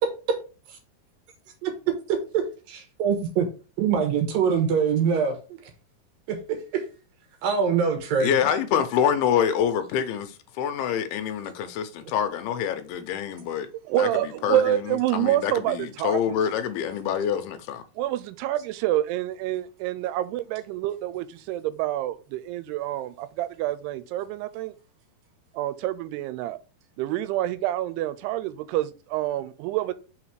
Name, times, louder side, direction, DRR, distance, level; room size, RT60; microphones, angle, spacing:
voice 1, 2.3-3.5 3.8-5.4 6.3-6.8 7.4-8.3, right 6 dB, 70° right, 2.6 m, -24 dB
voice 2, 8.2-13.7 14.0-14.8 15.1-17.8, left 8 dB, 80° left, 2.5 m, -26 dB
voice 3, 13.9-16.4 18.0-24.7 25.5-26.6 27.0-29.9, right 14 dB, 90° right, 2.6 m, -27 dB
5.6 x 4.1 x 4.7 m
omnidirectional pair, 4.6 m